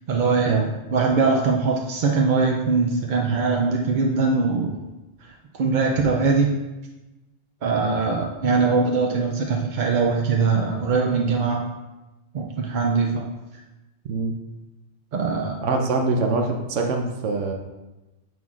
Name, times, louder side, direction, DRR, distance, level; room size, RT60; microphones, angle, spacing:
voice 1, 0.1-4.9 5.6-6.6 7.6-11.6 12.3-13.2 15.1-15.6, right 4 dB, 55° right, 1 dB, 0.5 m, -22 dB
voice 2, 15.6-17.5, right 3 dB, 85° right, 3 dB, 1.0 m, -24 dB
7.2 x 6.0 x 2.4 m, 1.1 s
omnidirectional pair, 1.2 m